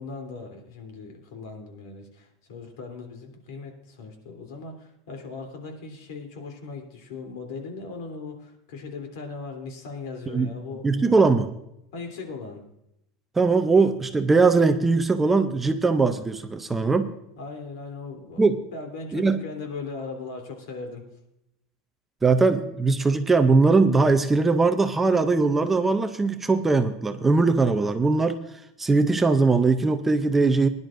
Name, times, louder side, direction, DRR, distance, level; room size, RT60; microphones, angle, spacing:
voice 1, 0.0-11.2 11.9-12.6 17.4-18.4 18.7-21.0, left 4 dB, 75° left, 3 dB, 3.1 m, -38 dB
voice 2, 10.8-11.5 13.4-17.1 18.4-18.6 19.1-19.4 22.2-28.4 28.8-30.7, right 3 dB, 10° right, 8 dB, 0.5 m, -20 dB
21.0 x 11.0 x 2.5 m, 0.82 s
supercardioid pair, 175°, 2 cm